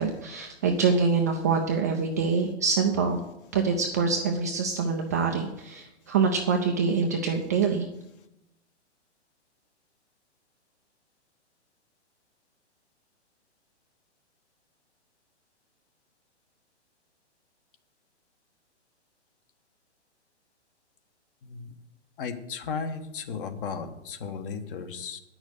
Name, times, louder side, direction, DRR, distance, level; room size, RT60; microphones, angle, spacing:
voice 1, 0.0-3.2 3.5-7.9, right 5 dB, 15° right, 1 dB, 0.3 m, -25 dB
voice 2, 22.2-25.2, left 5 dB, 50° left, 7 dB, 1.4 m, -35 dB
9.5 x 6.2 x 8.5 m, 0.87 s
hypercardioid pair, 140°, 36 cm